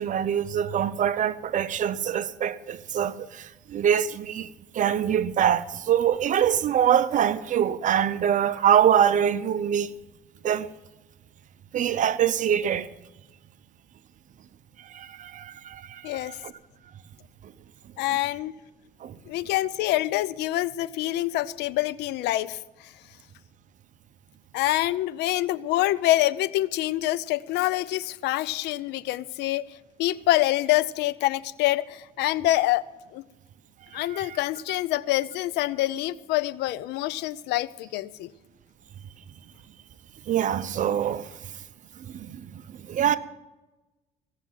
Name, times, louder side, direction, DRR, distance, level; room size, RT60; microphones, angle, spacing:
voice 1, 0.0-4.5 4.7-9.9 10.4-10.7 11.7-12.9 14.9-16.5 19.0-19.2 33.9-34.4 40.3-41.3 42.1-42.5 42.9-43.2, right 9 dB, 50° right, 0.8 m, -24 dB
voice 2, 18.0-18.5 19.3-22.9 24.5-29.7 30.0-32.9 33.1-33.2 33.9-38.3, left 16 dB, 85° left, 0.5 m, -26 dB
17.0 x 7.4 x 7.4 m
cardioid pair, 110°, 17 cm